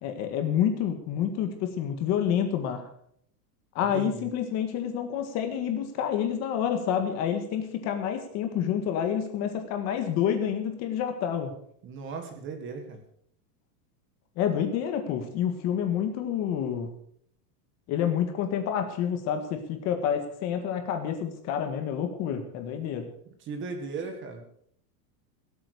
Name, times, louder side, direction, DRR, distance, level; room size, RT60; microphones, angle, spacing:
voice 1, 0.0-2.9 3.7-11.5 14.4-16.9 17.9-23.1, left 9 dB, 30° left, 6 dB, 1.8 m, -28 dB
voice 2, 3.9-4.3 11.8-13.0 23.4-24.4, right 4 dB, 25° right, 6 dB, 1.8 m, -37 dB
17.5 x 8.6 x 6.7 m, 0.65 s
supercardioid pair, 175°, 49 cm